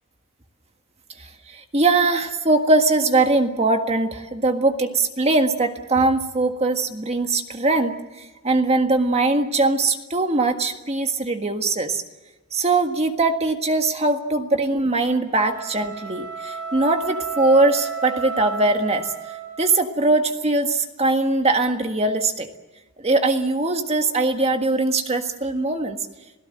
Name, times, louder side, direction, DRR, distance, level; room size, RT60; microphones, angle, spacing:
voice 1, 1.2-12.0 12.5-19.1 19.6-22.5 23.0-26.0, right 2 dB, 30° right, 6 dB, 1.6 m, -21 dB
sound 1, 15.3-19.8, right 6 dB, 80° right, 6.9 m, -32 dB
27.0 x 17.0 x 7.7 m, 1.1 s
head